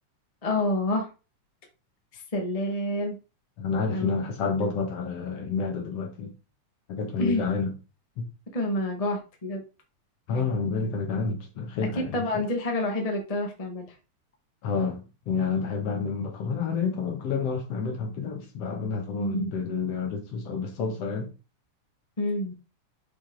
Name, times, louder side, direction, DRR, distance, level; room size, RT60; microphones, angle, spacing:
voice 1, 0.4-1.1 2.1-3.2 3.9-4.1 4.4-4.5 7.2-7.5 8.5-9.6 11.9-13.9 19.1-19.5 22.2-22.5, left 1 dB, 40° left, 0.5 m, -28 dB
voice 2, 3.6-6.3 6.9-7.7 8.2-8.3 10.3-12.4 14.6-21.3, left 5 dB, 60° left, 1.8 m, -29 dB
6.0 x 5.2 x 3.8 m
omnidirectional pair, 3.6 m